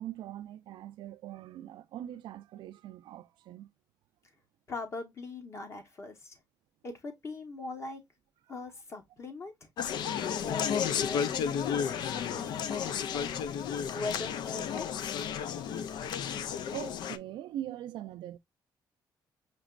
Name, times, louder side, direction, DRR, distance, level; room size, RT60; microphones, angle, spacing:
voice 1, 0.0-3.7 16.7-18.4, right 12 dB, 80° right, 0.4 m, -42 dB
voice 2, 4.7-6.4 6.8-8.0 8.5-9.7 10.3-13.4 13.9-15.1, left 3 dB, 35° left, 1.1 m, -41 dB
Conversation, 9.8-17.2, left 8 dB, 65° left, 0.4 m, -32 dB
5.2 x 3.0 x 2.4 m
cardioid pair, 140°, 8 cm